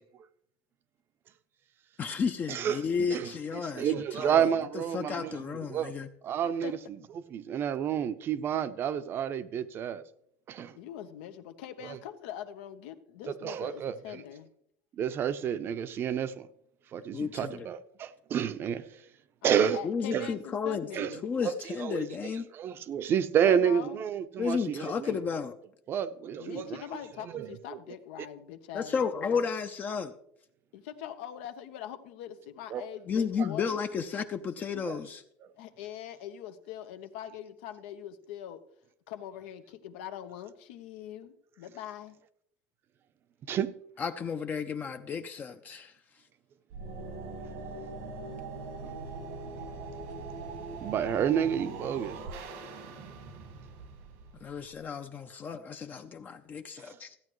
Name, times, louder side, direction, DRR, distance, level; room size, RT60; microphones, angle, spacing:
voice 1, 2.0-4.3 4.9-6.1 17.1-17.7 19.8-20.9 21.2-22.5 24.4-25.5 28.7-30.1 33.1-35.2 44.0-45.9 54.4-57.2, left 6 dB, 30° left, 0.5 m, -33 dB
voice 2, 2.5-2.8 3.1-5.9 6.2-6.8 7.1-10.0 10.5-10.8 11.8-12.0 13.3-14.2 14.9-16.5 16.9-19.0 19.4-19.8 20.1-20.3 20.9-21.1 21.4-25.2 25.9-26.8 27.2-27.6 32.7-32.8 34.7-35.0 35.4-35.5 43.5-43.7 48.8-48.9 50.8-52.2 56.8-57.0, right 8 dB, 40° right, 0.6 m, -30 dB
voice 3, 10.8-14.5 19.4-21.2 23.5-24.0 26.4-29.5 30.7-33.8 35.6-38.6 39.1-42.2, left 10 dB, 85° left, 1.0 m, -42 dB
sound 1, 46.7-54.8, right 3 dB, 85° right, 1.6 m, -41 dB
14.5 x 8.8 x 3.1 m
cardioid pair, 135°, 6 cm